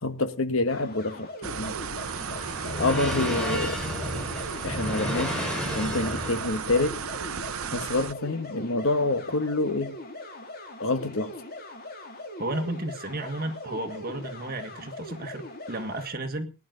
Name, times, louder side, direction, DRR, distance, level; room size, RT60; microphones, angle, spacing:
voice 1, 0.0-1.8 2.8-3.8 4.6-7.0 7.7-10.0 10.8-11.3, left 2 dB, 70° left, 1.4 m, -27 dB
sound 1, 0.7-16.1, left 1 dB, 45° left, 3.9 m, -41 dB
sound 2, 1.4-8.1, right 7 dB, 85° right, 0.7 m, -35 dB
sound 3, 1.7-6.7, equal, 5° left, 4.7 m, -32 dB
voice 2, 12.4-16.5, right 1 dB, 45° right, 1.8 m, -33 dB
19.0 x 11.0 x 3.9 m
head